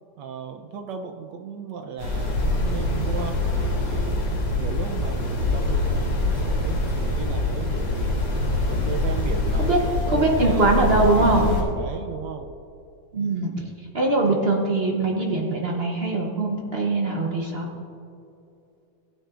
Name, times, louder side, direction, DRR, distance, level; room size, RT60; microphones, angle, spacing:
voice 1, 0.2-8.2 8.6-12.5, right 6 dB, 75° right, 5 dB, 1.0 m, -36 dB
sound 1, 2.0-11.6, left 2 dB, 80° left, 3.5 m, -24 dB
voice 2, 10.1-11.6 13.1-13.7 13.9-17.7, right 2 dB, 60° right, 0 dB, 0.6 m, -22 dB
16.0 x 9.2 x 2.5 m, 2.7 s
omnidirectional pair, 2.4 m